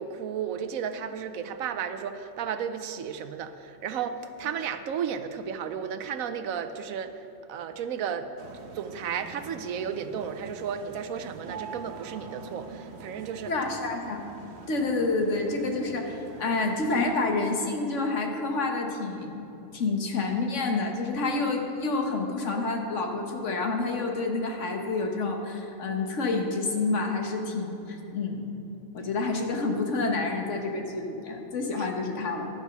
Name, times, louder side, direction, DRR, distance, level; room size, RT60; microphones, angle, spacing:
voice 1, 0.0-7.1 7.5-13.5 31.8-31.9, right 7 dB, 90° right, 9 dB, 1.1 m, -33 dB
sound 1, 8.4-17.2, right 5 dB, 55° right, 1.1 m, -45 dB
voice 2, 13.5-14.2 14.7-19.4 19.7-28.4 28.9-32.4, left 3 dB, 60° left, 3 dB, 1.5 m, -28 dB
12.0 x 8.2 x 5.9 m, 3.0 s
omnidirectional pair, 1.4 m